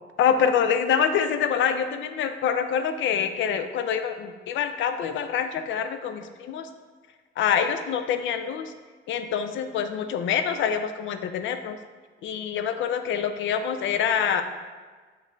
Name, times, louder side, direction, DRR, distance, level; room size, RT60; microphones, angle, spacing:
voice 1, 0.2-6.7 7.4-8.7 9.1-11.8 12.2-14.4, left 7 dB, 75° left, 8 dB, 0.4 m, -25 dB
6.1 x 2.1 x 3.8 m, 1.4 s
cardioid pair, 90°, 20 cm